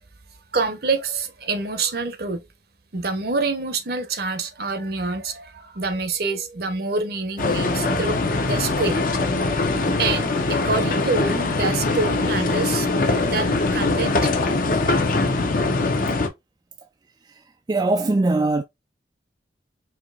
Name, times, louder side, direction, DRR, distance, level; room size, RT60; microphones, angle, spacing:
voice 1, 0.5-2.5 2.9-14.4, right 3 dB, 60° right, 0.9 m, -27 dB
sound 1, 7.4-16.3, left 3 dB, 50° left, 0.7 m, -22 dB
voice 2, 17.3-18.6, right 2 dB, 25° right, 0.3 m, -22 dB
4.4 x 2.9 x 2.3 m
head